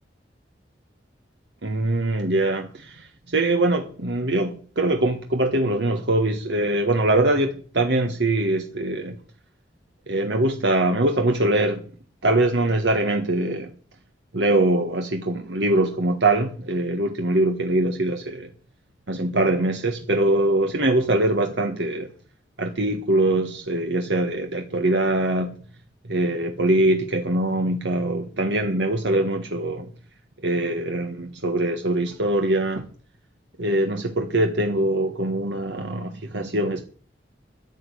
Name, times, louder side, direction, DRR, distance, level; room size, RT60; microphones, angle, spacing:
voice 1, 1.6-3.1 3.3-9.2 10.1-11.8 12.2-13.7 14.3-18.5 19.1-22.1 22.6-25.6 26.1-29.9 30.4-32.8 33.6-36.9, right 1 dB, 75° right, 1.4 m, -23 dB
10.5 x 10.5 x 8.4 m
head